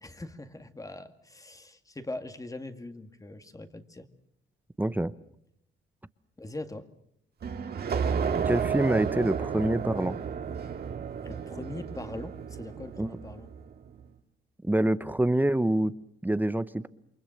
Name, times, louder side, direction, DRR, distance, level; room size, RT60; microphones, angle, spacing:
voice 1, 0.0-4.1 6.4-6.9 11.2-13.5, left 2 dB, 15° left, 8 dB, 2.1 m, -41 dB
voice 2, 4.8-5.1 8.4-10.2 13.0-13.1 14.6-15.9 16.2-16.9, right 1 dB, 10° right, 14 dB, 0.9 m, -26 dB
sound 1, 7.4-13.8, right 6 dB, 50° right, 2.1 m, -32 dB
29.0 x 23.5 x 6.6 m, 0.71 s
cardioid pair, 90°, 20 cm